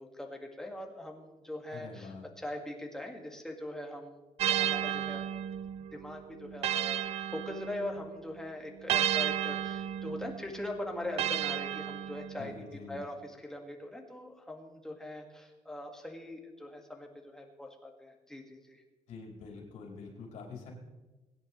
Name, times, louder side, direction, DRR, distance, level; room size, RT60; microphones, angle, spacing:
voice 1, 0.0-5.3 5.9-18.8, left 1 dB, 5° left, 1 dB, 1.8 m, -42 dB
voice 2, 1.7-2.2 12.4-13.0 19.1-20.7, left 4 dB, 70° left, -1 dB, 4.8 m, -45 dB
sound 1, 4.4-8.1 8.9-12.6, right 10 dB, 55° right, 0.4 m, -33 dB
22.5 x 10.0 x 3.2 m, 1.1 s
cardioid pair, 145°, 12 cm